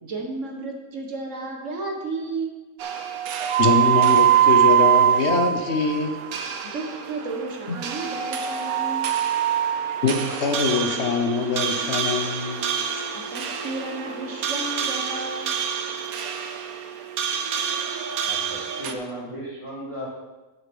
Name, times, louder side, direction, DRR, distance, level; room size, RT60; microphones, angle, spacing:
voice 1, 0.0-2.5 6.6-9.2 13.1-15.5, right 3 dB, 60° right, 1 dB, 1.7 m, -33 dB
sound 1, 2.8-18.9, right 10 dB, 90° right, 1.3 m, -24 dB
voice 2, 3.6-6.2 10.0-12.6, left 5 dB, 55° left, 4 dB, 1.2 m, -23 dB
voice 3, 18.2-20.1, equal, 20° left, -8 dB, 2.5 m, -35 dB
7.8 x 7.3 x 5.3 m, 1.1 s
omnidirectional pair, 1.5 m